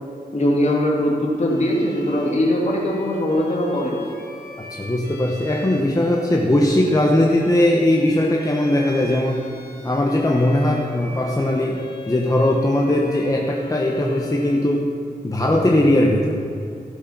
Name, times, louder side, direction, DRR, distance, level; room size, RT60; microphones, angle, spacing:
voice 1, 0.3-4.1, left 1 dB, 45° left, -3 dB, 2.8 m, -21 dB
Bowed string instrument, 1.4-14.8, left 2 dB, 85° left, 1.6 m, -41 dB
voice 2, 4.7-9.5 9.8-14.9 15.2-16.4, left 1 dB, 20° left, -1 dB, 1.0 m, -19 dB
15.5 x 6.6 x 6.0 m, 2.5 s
wide cardioid pair, 80°, 16 cm